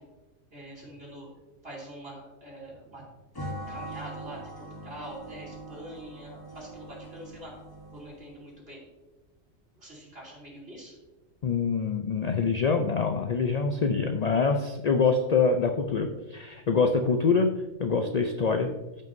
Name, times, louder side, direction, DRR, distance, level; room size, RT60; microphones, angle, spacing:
voice 1, 0.5-1.3 1.6-3.0 3.7-7.5 7.9-8.8 9.8-11.0, right 1 dB, 50° right, -4 dB, 3.3 m, -45 dB
sound 1, 3.3-8.5, right 1 dB, 20° left, 0.7 m, -41 dB
voice 2, 11.4-17.5 17.8-18.7, left 5 dB, 55° left, 5 dB, 0.4 m, -25 dB
14.5 x 5.5 x 2.6 m, 1.1 s
omnidirectional pair, 1.3 m